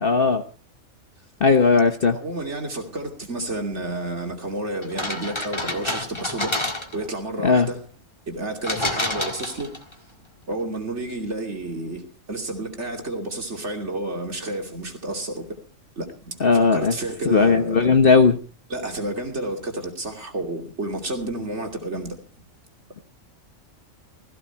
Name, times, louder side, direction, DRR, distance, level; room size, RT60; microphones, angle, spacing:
voice 1, 0.0-0.4 1.4-2.2 7.4-7.7 16.4-16.9 17.3-18.4, left 4 dB, 50° left, 1.2 m, -17 dB
voice 2, 2.1-6.5 6.9-7.8 8.3-9.7 10.5-15.6 16.0-17.9 18.7-22.2, right 2 dB, 60° right, 3.1 m, -30 dB
sound 1, 4.8-7.1 8.6-9.9, left 1 dB, 20° left, 1.7 m, -28 dB
17.0 x 15.5 x 4.4 m
omnidirectional pair, 1.3 m